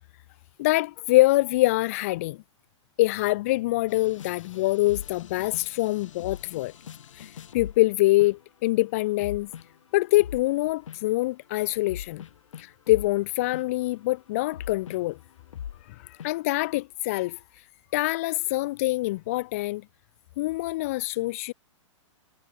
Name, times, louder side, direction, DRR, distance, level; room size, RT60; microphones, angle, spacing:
voice 1, 0.6-2.4 3.0-6.7 7.1-9.5 9.9-12.2 12.6-15.2 15.9-17.6 17.9-19.8 20.4-21.5, left 19 dB, 25° left, 0.6 m, -25 dB
sound 1, 3.9-7.9 8.2-8.6 9.0-10.5 10.9-11.1 11.9-15.9 16.2-16.3, left 9 dB, 75° left, 3.4 m, -41 dB
hypercardioid pair, 175°, 16 cm